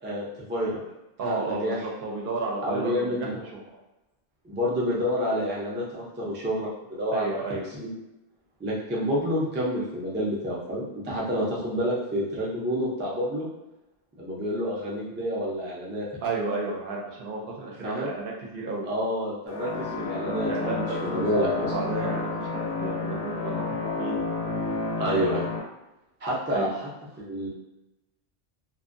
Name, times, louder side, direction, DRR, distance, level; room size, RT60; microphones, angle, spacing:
voice 1, 0.0-0.8 1.2-1.8 2.6-3.3 4.4-7.9 8.6-13.5 14.2-16.1 17.8-18.1 18.8-21.7 25.0-25.4 26.2-26.9 27.2-27.5, equal, 20° right, -5 dB, 0.3 m, -29 dB
voice 2, 1.2-3.6 7.1-7.7 16.2-18.9 20.5-23.6 24.0-24.2 26.5-26.7, right 3 dB, 65° right, -1 dB, 0.7 m, -32 dB
sound 1, 19.5-25.6, left 3 dB, 70° left, 0.8 m, -30 dB
2.5 x 2.1 x 2.5 m, 0.97 s
omnidirectional pair, 1.0 m